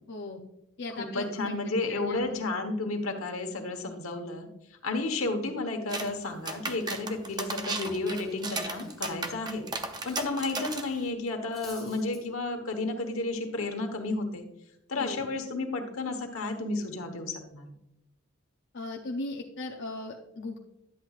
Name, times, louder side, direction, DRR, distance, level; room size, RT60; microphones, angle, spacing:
voice 1, 0.1-0.4 0.8-2.4 15.0-15.3 18.7-20.6, left 2 dB, 55° left, 1 dB, 0.6 m, -38 dB
voice 2, 0.9-4.5 4.8-9.6 10.0-14.5 14.9-17.7, left 2 dB, 85° left, 5 dB, 1.2 m, -32 dB
sound 1, 5.9-6.1 6.4-11.0, right 3 dB, 20° right, 0.6 m, -35 dB
Cutlery silverware, 7.2-10.4 10.6-10.8 11.2-12.2, left 2 dB, ahead, 2.6 m, -53 dB
10.5 x 7.9 x 2.4 m, 0.83 s
head